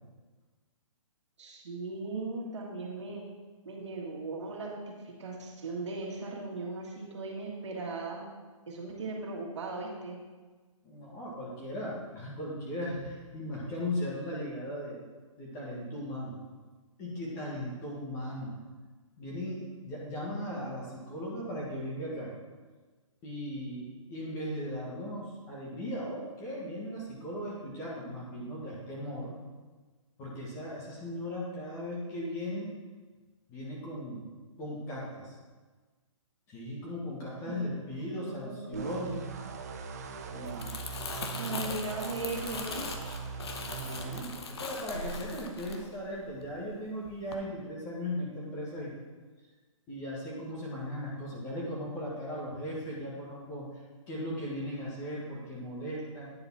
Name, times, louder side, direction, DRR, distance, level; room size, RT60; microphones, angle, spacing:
voice 1, 1.4-3.2 3.7-8.2 8.7-10.2 37.4-38.9 41.4-42.9, right 3 dB, 55° right, -1 dB, 1.8 m, -38 dB
voice 2, 10.8-15.0 15.4-16.3 17.0-18.5 19.2-22.3 23.2-29.3 30.2-32.7 33.5-34.3 34.6-35.3 36.5-39.2 40.3-41.0 41.3-41.7 43.6-48.9 49.9-53.7 54.1-56.3, equal, 15° left, -5 dB, 1.4 m, -38 dB
sound 1, 38.7-44.2, right 6 dB, 30° right, 0.5 m, -40 dB
Crumpling crinkling, 40.3-46.7 47.1-47.3, left 4 dB, 50° left, 0.9 m, -40 dB
9.6 x 3.9 x 5.6 m, 1.3 s
hypercardioid pair, 170°, 17 cm